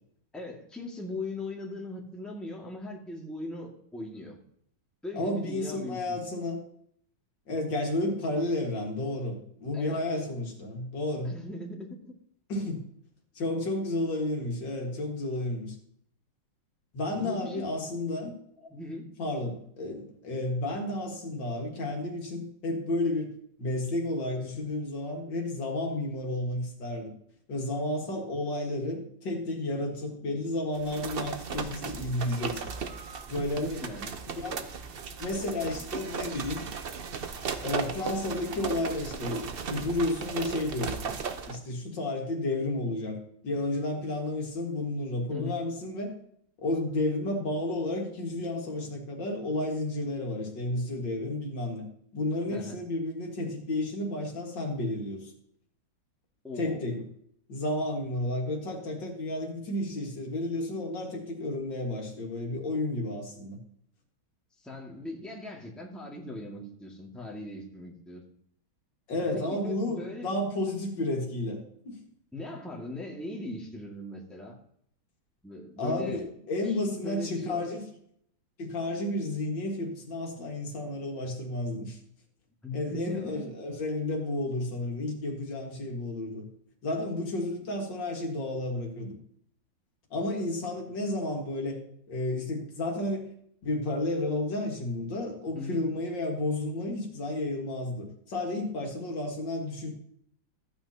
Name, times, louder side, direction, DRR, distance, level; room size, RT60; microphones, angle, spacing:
voice 1, 0.3-4.4 5.0-6.2 9.7-10.0 11.2-12.1 17.1-17.7 18.6-19.1 33.6-34.1 45.3-45.6 52.5-52.8 56.4-56.8 64.6-68.2 69.3-70.3 72.3-74.6 75.4-76.2 77.0-77.7 82.6-83.5 95.5-95.9, left 2 dB, ahead, -2 dB, 1.7 m, -39 dB
voice 2, 5.1-6.6 7.5-11.3 12.5-12.9 13.4-15.8 16.9-18.4 19.2-23.3 23.6-27.1 27.5-32.7 33.3-33.8 34.4-34.7 35.2-36.6 37.6-41.1 41.5-46.2 46.6-51.9 52.1-55.3 56.6-57.1 57.5-63.6 69.1-72.0 75.8-77.9 78.6-82.0 82.7-86.5 86.8-89.2 90.1-93.3 93.6-99.9, left 2 dB, 70° left, 1 dB, 2.4 m, -32 dB
sound 1, 30.8-41.6, right 6 dB, 70° right, 0.5 m, -36 dB
14.5 x 9.0 x 2.8 m, 0.67 s
omnidirectional pair, 2.1 m